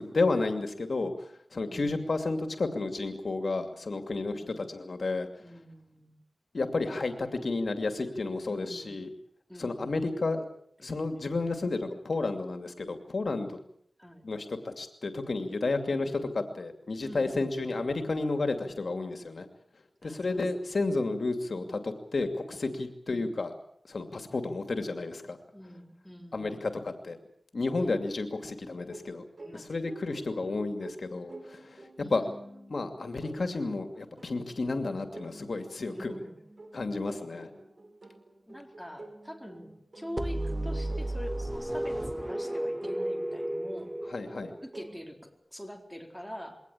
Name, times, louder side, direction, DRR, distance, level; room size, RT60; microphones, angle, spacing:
voice 1, 0.0-5.3 6.5-9.1 9.6-10.4 10.8-13.5 14.2-19.5 20.0-23.5 23.9-25.4 26.3-27.2 27.5-29.2 29.5-31.8 32.1-32.2 32.7-36.1 36.7-37.5 44.1-44.5, left 3 dB, 75° left, 6 dB, 2.5 m, -31 dB
voice 2, 5.4-6.1 8.4-9.0 9.5-10.0 10.8-11.1 14.0-14.2 16.0-16.3 17.0-17.8 20.0-21.1 23.1-23.3 25.5-26.6 27.7-28.0 29.4-29.8 30.1-30.6 32.0-32.8 35.9-36.4 37.3-37.5 38.5-43.9 44.6-46.6, equal, ahead, 3 dB, 4.3 m, -46 dB
sound 1, 28.9-45.0, right 2 dB, 55° right, 4.6 m, -50 dB
sound 2, 40.2-44.9, right 1 dB, 15° right, 1.1 m, -33 dB
22.5 x 18.5 x 8.5 m, 0.69 s
wide cardioid pair, 70°, 0 cm